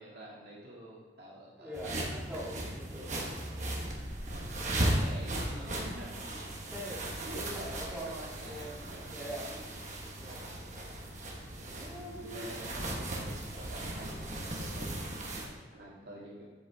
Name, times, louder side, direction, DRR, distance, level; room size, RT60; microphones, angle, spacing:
voice 1, 0.0-1.7 4.8-6.1 7.2-9.1 11.3-11.4 11.7-16.4, right 1 dB, 65° right, -5 dB, 2.2 m, -47 dB
voice 2, 1.5-3.5 6.7-8.1 8.4-8.8 9.1-9.6 10.2-10.5 11.8-12.5 16.0-16.4, equal, 5° right, -8 dB, 2.0 m, -44 dB
sound 1, 1.7-15.5, right 1 dB, 40° right, 1.3 m, -37 dB
7.9 x 7.4 x 3.5 m, 1.4 s
head